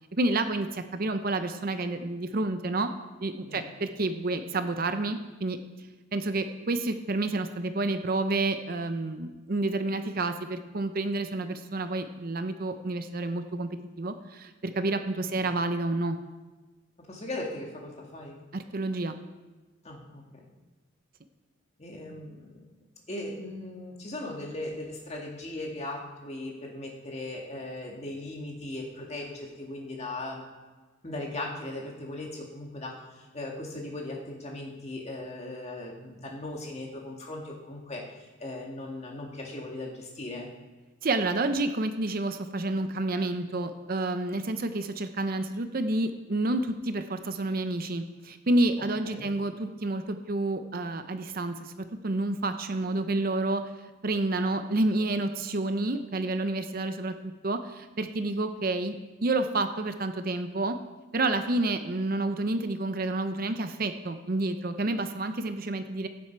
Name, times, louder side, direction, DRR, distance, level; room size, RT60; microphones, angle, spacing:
voice 1, 0.1-2.9 3.2-5.6 6.1-13.7 14.0-16.2 18.5-19.2 41.0-53.6 54.0-57.1 57.4-60.8 61.1-66.1, right 2 dB, 45° right, 8 dB, 0.6 m, -29 dB
voice 2, 3.5-3.8 15.3-15.5 17.0-18.4 19.8-20.5 21.8-22.5 23.1-30.5 31.0-33.0 33.3-38.0 38.4-40.5 49.0-49.3, left 2 dB, 30° left, 0 dB, 1.9 m, -38 dB
16.0 x 7.3 x 4.6 m, 1.2 s
head